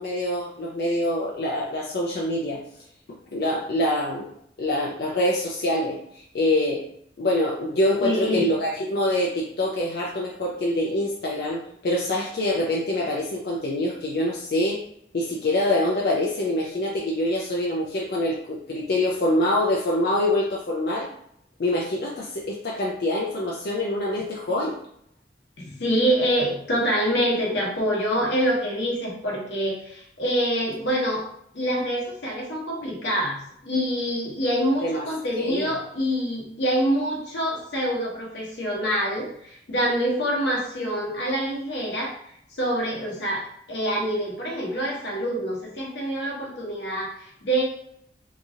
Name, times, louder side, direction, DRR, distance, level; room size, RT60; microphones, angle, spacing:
voice 1, 0.0-2.6 3.3-4.3 4.6-6.8 7.2-14.8 15.1-21.1 21.6-24.8 34.8-35.0 35.4-35.7, left 1 dB, 60° left, -3 dB, 0.4 m, -25 dB
voice 2, 8.0-8.4 25.6-31.3 31.5-42.1 42.5-47.6, equal, 90° left, -3 dB, 1.0 m, -26 dB
2.9 x 2.4 x 2.7 m, 0.69 s
head